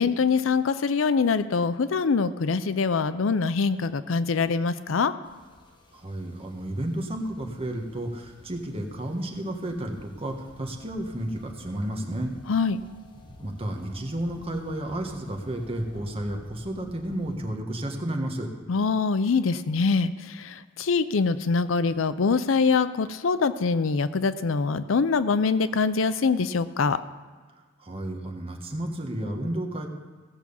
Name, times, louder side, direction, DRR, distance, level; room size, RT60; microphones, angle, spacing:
voice 1, 0.0-5.1 12.5-12.8 18.7-27.0, left 4 dB, 75° left, 14 dB, 0.5 m, -24 dB
sound 1, 5.2-17.4, left 1 dB, 25° left, 1.2 m, -51 dB
voice 2, 5.9-12.3 13.4-18.5 27.8-29.9, right 1 dB, 30° right, 2 dB, 1.5 m, -32 dB
16.0 x 6.0 x 7.1 m, 1.4 s
head